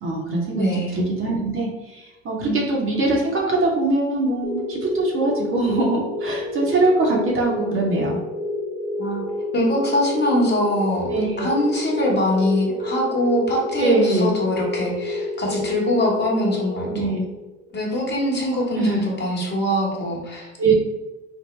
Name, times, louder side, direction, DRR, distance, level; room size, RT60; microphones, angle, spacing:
voice 1, 0.0-8.2 11.1-11.5 13.8-14.3 16.9-17.2 18.8-19.0 20.6-20.7, right 2 dB, 35° right, -2 dB, 0.9 m, -22 dB
voice 2, 0.6-0.9 2.3-2.6 8.9-9.2 9.5-17.1 17.7-20.5, left 1 dB, 30° left, -3 dB, 1.2 m, -23 dB
sound 1, 4.4-17.6, left 2 dB, 70° right, 0.9 m, -29 dB
3.5 x 2.1 x 3.2 m, 1.1 s
hypercardioid pair, 75°, 37 cm